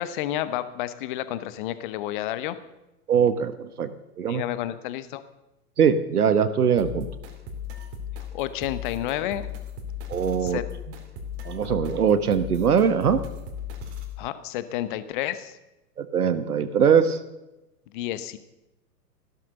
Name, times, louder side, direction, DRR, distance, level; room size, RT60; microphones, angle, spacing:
voice 1, 0.0-2.6 4.3-5.2 8.3-9.5 10.4-10.7 11.6-11.8 14.2-15.6 17.9-18.4, left 13 dB, 30° left, 13 dB, 1.1 m, -30 dB
voice 2, 3.1-4.4 5.8-7.1 10.1-10.6 11.4-13.2 16.0-17.2, right 7 dB, 65° right, 12 dB, 1.4 m, -22 dB
sound 1, 6.8-14.2, left 7 dB, 25° right, 2.6 m, -37 dB
15.5 x 12.0 x 6.7 m, 0.98 s
figure-of-eight pair, 115°, 48 cm